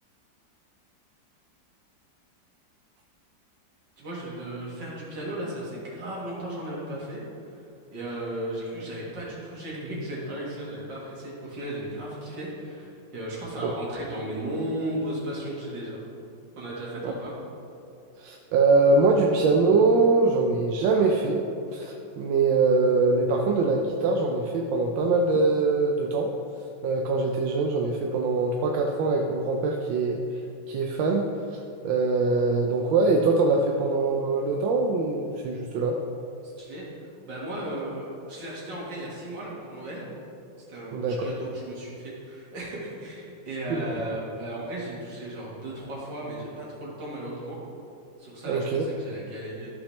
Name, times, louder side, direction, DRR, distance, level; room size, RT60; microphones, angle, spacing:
voice 1, 4.0-7.5 7.9-16.0 16.6-17.3 36.4-40.1 40.7-47.6 48.2-49.7, right 1 dB, 70° right, -6 dB, 2.4 m, -35 dB
voice 2, 18.2-21.4 21.7-26.3 26.8-30.2 30.7-31.3 31.5-36.0 40.9-41.3 43.7-43.8 48.5-48.8, right 3 dB, 85° right, 1 dB, 1.4 m, -23 dB
13.0 x 5.8 x 3.2 m, 2.7 s
omnidirectional pair, 2.0 m